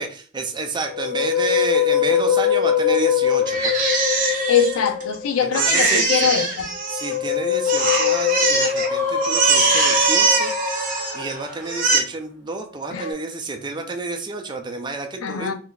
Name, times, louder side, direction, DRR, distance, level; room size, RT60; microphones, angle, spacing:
voice 1, 0.0-3.8 5.4-6.3 6.9-10.5 11.1-15.5, right 3 dB, 20° right, 0.4 m, -30 dB
Musical instrument, 0.8-5.4 6.7-11.6 12.7-13.1, left 8 dB, 45° left, 0.8 m, -23 dB
Crying sobbing, 3.5-5.1 5.5-7.3 7.7-8.9 9.2-11.3 11.6-12.0, right 4 dB, 40° right, 0.7 m, -21 dB
voice 2, 4.5-6.7 12.9-13.1 15.2-15.5, left 7 dB, 85° left, 0.5 m, -22 dB
Screaming, 8.8-11.8, left 2 dB, 15° left, 1.1 m, -29 dB
2.6 x 2.3 x 3.7 m
head